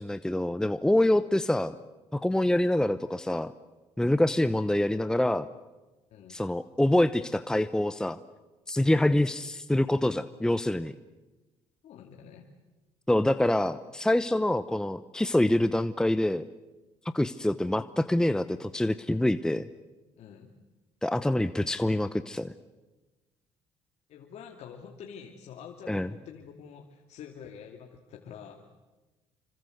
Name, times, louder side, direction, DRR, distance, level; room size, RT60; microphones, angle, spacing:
voice 1, 0.0-1.7 2.1-3.5 4.0-5.5 6.3-8.2 8.7-10.9 13.1-16.4 17.1-19.7 21.0-22.5 25.9-26.1, left 1 dB, 5° left, 12 dB, 0.9 m, -26 dB
voice 2, 6.1-6.4 8.8-9.0 11.8-12.5 20.2-20.5 24.1-28.7, left 7 dB, 65° left, 2 dB, 2.6 m, -47 dB
27.0 x 25.0 x 8.0 m, 1.2 s
supercardioid pair, 80°, 12 cm